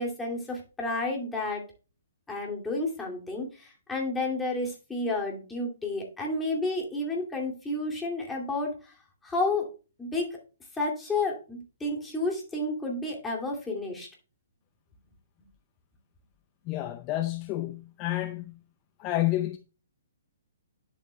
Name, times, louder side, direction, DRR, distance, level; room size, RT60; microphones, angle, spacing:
voice 1, 0.0-1.6 2.3-8.9 9.2-9.7 10.0-10.3 10.7-14.1, left 2 dB, 10° left, 2.4 m, -31 dB
voice 2, 16.7-18.5 19.0-19.6, left 15 dB, 30° left, 0.6 m, -29 dB
10.5 x 7.2 x 2.2 m
figure-of-eight pair, 130°, 0 cm